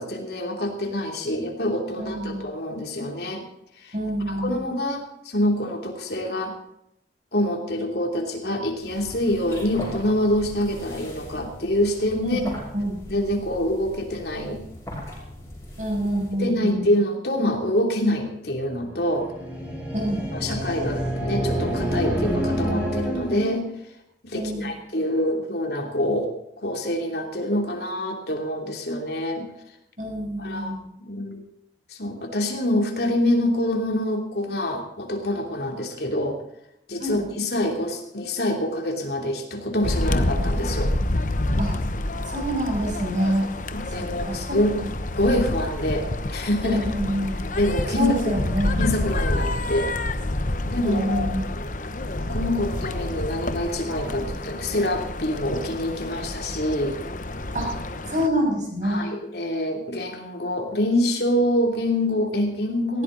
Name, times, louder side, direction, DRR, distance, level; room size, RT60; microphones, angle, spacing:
voice 1, 0.0-3.4 3.8-3.9 4.3-6.5 7.3-12.4 13.1-14.6 16.4-19.3 20.3-23.7 24.2-29.5 30.4-30.8 31.1-31.4 31.9-36.4 36.9-40.9 43.7-44.8 45.2-46.8 47.5-48.3 48.8-49.9 50.6-51.3 52.1-57.0 58.8-63.0, left 1 dB, 60° left, 2 dB, 3.1 m, -26 dB
voice 2, 2.0-2.4 3.9-4.6 12.2-13.0 15.8-16.9 19.9-20.2 24.3-24.8 30.0-30.8 37.0-37.2 41.6-41.7 42.2-43.5 43.9-44.9 46.6-47.4 47.9-48.8 50.8-51.5 57.5-57.7 58.1-59.1, equal, 40° right, 0 dB, 6.7 m, -27 dB
sound 1, 8.8-16.5, left 1 dB, 15° left, 5.4 m, -40 dB
sound 2, 19.0-23.6, equal, 10° right, 6.9 m, -27 dB
sound 3, 39.8-58.3, left 1 dB, 45° left, 1.0 m, -28 dB
19.5 x 16.5 x 4.0 m, 0.78 s
head